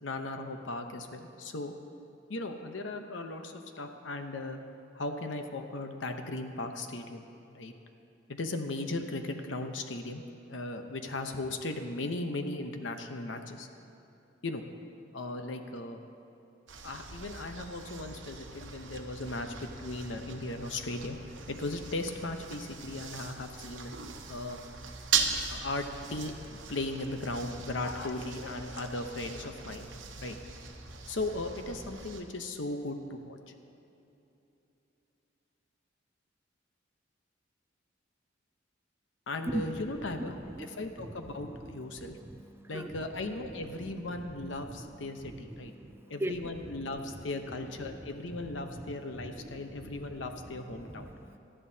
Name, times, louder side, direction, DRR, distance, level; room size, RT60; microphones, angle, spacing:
voice 1, 0.0-1.7 2.3-4.6 4.9-7.7 8.3-10.2 10.5-13.7 14.4-14.6 15.1-16.0 16.8-21.2 21.5-23.9 24.3-24.6 25.5-25.8 26.1-29.9 30.2-30.4 31.1-33.4 39.3-42.2 42.7-45.7 46.0-51.1, left 2 dB, 85° left, 6 dB, 0.9 m, -37 dB
sound 1, 16.7-32.2, right 5 dB, 85° right, 1.0 m, -39 dB
voice 2, 40.2-40.7 41.0-41.1 41.4-41.7 42.0-43.0 44.8-44.9 45.3-46.4 49.4-49.6 51.0-51.4, right 1 dB, 15° right, 8 dB, 0.3 m, -39 dB
18.5 x 12.5 x 2.8 m, 2.9 s
head